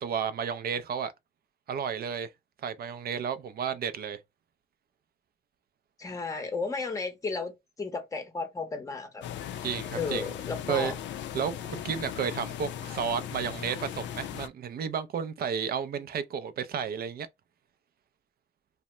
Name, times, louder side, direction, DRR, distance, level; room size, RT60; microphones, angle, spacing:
voice 1, 0.0-1.1 1.7-2.3 2.6-4.2 9.6-10.3 10.7-10.9 11.3-17.3, right 7 dB, 50° right, 0.5 m, -32 dB
voice 2, 6.0-9.2 9.9-11.0, left 4 dB, 15° left, 0.7 m, -34 dB
sound 1, 9.2-14.5, left 10 dB, 65° left, 0.4 m, -38 dB
2.7 x 2.1 x 3.1 m
cardioid pair, 90°, 20 cm